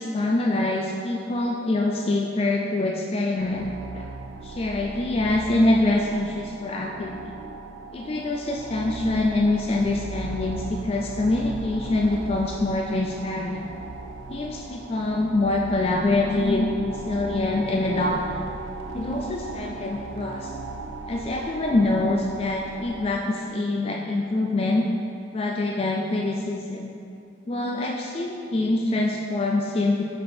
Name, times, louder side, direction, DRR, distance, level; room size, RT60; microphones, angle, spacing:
voice 1, 0.0-3.7 3.9-4.1 4.4-7.3 7.9-13.7 14.3-18.5 18.9-20.5 21.1-24.8 25.3-26.9 27.5-30.0, left 2 dB, 30° left, 0 dB, 0.3 m, -25 dB
sound 1, 3.4-23.1, right 3 dB, 85° right, 0.5 m, -37 dB
6.4 x 5.5 x 4.3 m, 2.6 s
head